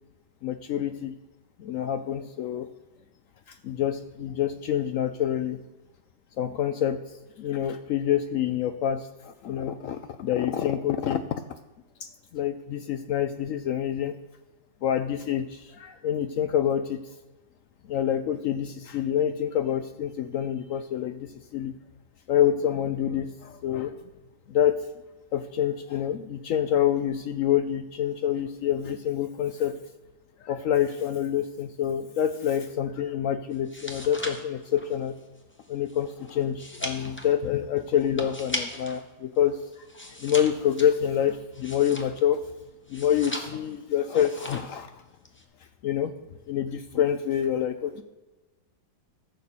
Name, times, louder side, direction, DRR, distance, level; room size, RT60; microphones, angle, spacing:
voice 1, 0.4-1.2 1.6-2.7 3.5-5.6 6.4-7.0 7.4-11.4 12.0-14.1 14.8-17.0 17.9-21.7 22.3-24.0 24.5-24.8 25.3-29.8 30.4-35.2 35.7-39.6 40.0-42.4 42.9-45.0 45.8-46.1 46.5-48.0, left 10 dB, 80° left, 10 dB, 0.7 m, -27 dB
sound 1, 33.5-39.0 39.3-42.4 42.9-43.8 44.1-44.8 45.0-45.4, left 1 dB, 10° left, 0.5 m, -38 dB
14.5 x 6.7 x 4.2 m, 1.1 s
omnidirectional pair, 2.0 m